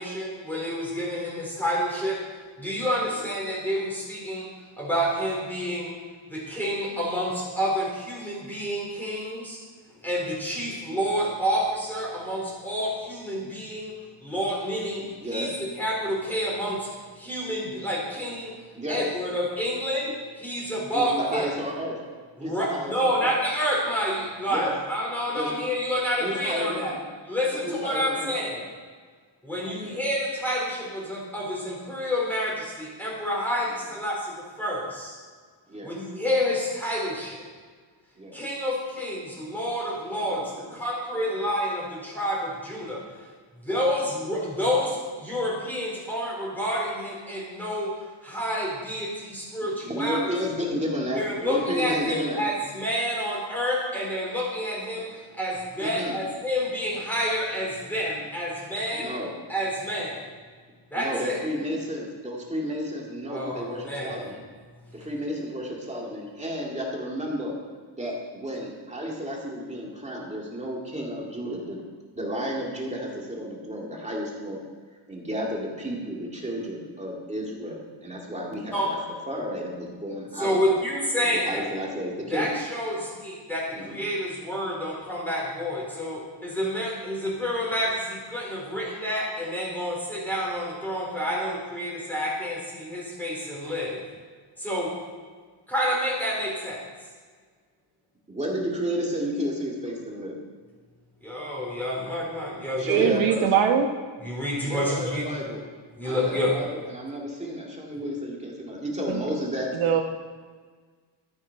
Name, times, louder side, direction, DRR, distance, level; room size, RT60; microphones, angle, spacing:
voice 1, 0.0-2.2 2.6-5.9 6.3-9.6 10.0-13.9 14.2-15.5 15.8-16.9 17.2-18.5 18.9-21.5 22.4-26.9 27.3-28.6 29.4-35.2 35.8-37.4 38.3-43.0 43.6-48.0 48.2-50.3 51.1-59.1 59.5-60.3 60.9-61.4 63.3-64.3 78.7-78.9 80.4-81.7 82.3-94.0 94.6-94.9 95.7-96.8 101.2-103.1 104.2-105.2 106.0-106.5, equal, 5° left, -5 dB, 4.2 m, -29 dB
voice 2, 15.0-15.5 18.7-19.0 20.9-22.0 22.4-23.3 24.5-24.7 25.3-25.6 26.2-27.0 27.5-28.6 29.6-30.1 35.7-35.9 38.2-38.4 40.3-40.8 41.2-41.3 43.7-43.9 49.8-52.4 55.8-56.2 58.9-59.3 60.9-64.4 64.9-67.5 68.0-71.8 72.1-74.6 75.1-79.0 79.3-80.7 81.3-82.5 83.7-84.0 98.3-100.4 102.8-103.4 104.6-105.6 106.0-109.7, equal, 15° right, -2 dB, 2.3 m, -32 dB
voice 3, 102.8-103.9 109.1-109.2 109.7-110.0, right 8 dB, 80° right, 4 dB, 1.2 m, -21 dB
13.0 x 11.0 x 4.7 m, 1.5 s
wide cardioid pair, 155°, 48 cm